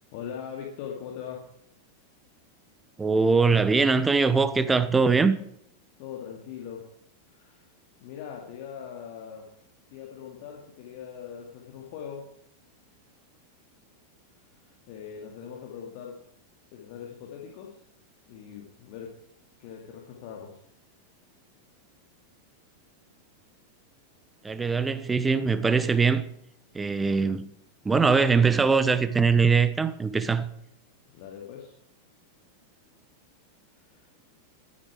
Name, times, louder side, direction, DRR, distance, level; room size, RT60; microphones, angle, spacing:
voice 1, 0.1-1.4 6.0-6.8 7.3-7.7 8.0-9.5 9.9-12.3 14.6-16.2 16.7-17.8 18.3-19.1 19.6-20.6 31.1-31.7 33.8-34.1, left 8 dB, 45° left, 2.2 m, -41 dB
voice 2, 3.0-5.4 24.4-26.3 26.7-27.4 27.8-30.5, right 4 dB, 10° right, 1.0 m, -22 dB
12.5 x 9.9 x 4.8 m
figure-of-eight pair, 90°, 0 cm